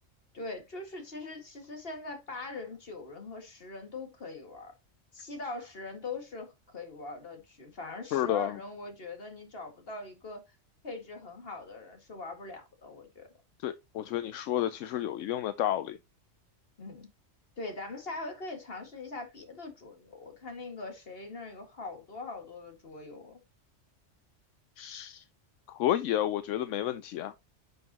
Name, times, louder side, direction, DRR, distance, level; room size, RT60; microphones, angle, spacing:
voice 1, 0.3-4.7 5.1-10.4 10.8-13.3 16.8-17.1 17.6-23.4, left 3 dB, 50° left, 2.1 m, -42 dB
voice 2, 8.1-8.6 13.6-16.0 24.8-25.2 25.7-27.3, left 12 dB, 80° left, 0.9 m, -31 dB
10.5 x 5.7 x 2.9 m
omnidirectional pair, 1.3 m